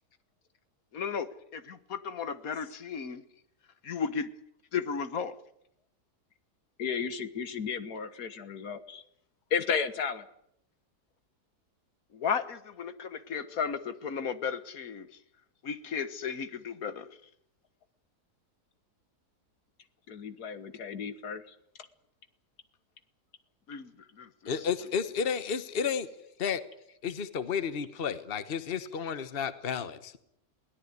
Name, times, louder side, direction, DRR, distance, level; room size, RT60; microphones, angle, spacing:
voice 1, 0.9-3.2 3.8-4.3 4.7-5.3 12.1-15.1 15.6-17.1 23.7-24.3, left 6 dB, 60° left, 12 dB, 1.7 m, -34 dB
voice 2, 6.8-9.0 9.5-10.3 20.1-21.6, left 6 dB, 80° left, 11 dB, 1.8 m, -33 dB
voice 3, 24.5-26.1 26.4-26.6 27.0-30.2, left 6 dB, 40° left, 12 dB, 1.3 m, -32 dB
22.0 x 17.5 x 9.5 m, 0.76 s
omnidirectional pair, 1.7 m